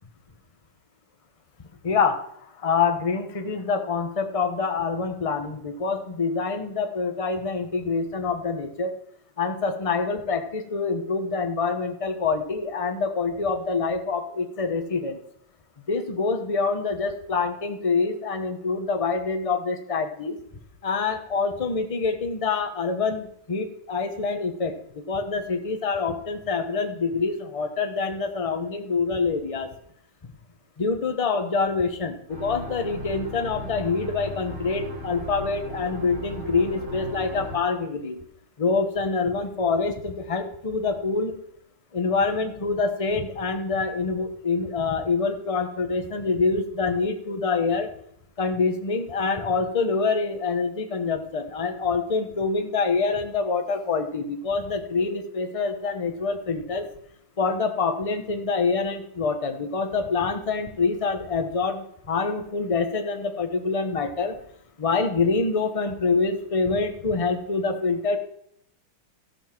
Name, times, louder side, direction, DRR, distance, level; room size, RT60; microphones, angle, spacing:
voice 1, 1.8-2.2 2.6-8.9 9.4-15.2 15.9-20.4 20.8-29.7 30.8-38.2 38.6-41.4 41.9-47.9 48.4-56.9 57.4-64.4 64.8-68.2, left 4 dB, 25° left, 5 dB, 0.7 m, -26 dB
sound 1, 32.3-37.6, equal, 50° right, 4.5 m, -37 dB
14.5 x 7.2 x 6.0 m, 0.71 s
omnidirectional pair, 2.3 m